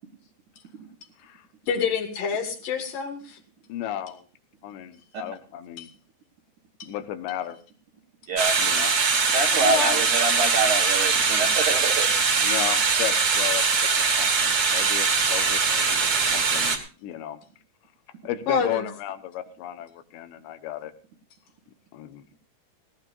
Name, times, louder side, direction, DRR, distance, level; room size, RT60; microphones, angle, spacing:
voice 1, 1.7-3.4 5.8-5.9 6.8-6.9 9.6-10.0 18.5-18.9, left 5 dB, 60° left, 5 dB, 3.3 m, -27 dB
voice 2, 3.7-4.2 4.6-5.9 6.9-7.6 8.6-8.9 9.6-9.8 12.4-13.9 14.2-16.1 16.3-17.4 18.2-20.9 21.9-22.2, left 12 dB, 90° left, 10 dB, 3.3 m, -34 dB
sound 1, 8.4-16.8, right 5 dB, 40° right, 2.3 m, -22 dB
voice 3, 9.3-12.1, right 3 dB, 60° right, 4 dB, 2.4 m, -26 dB
18.5 x 18.0 x 2.5 m, 0.36 s
omnidirectional pair, 4.8 m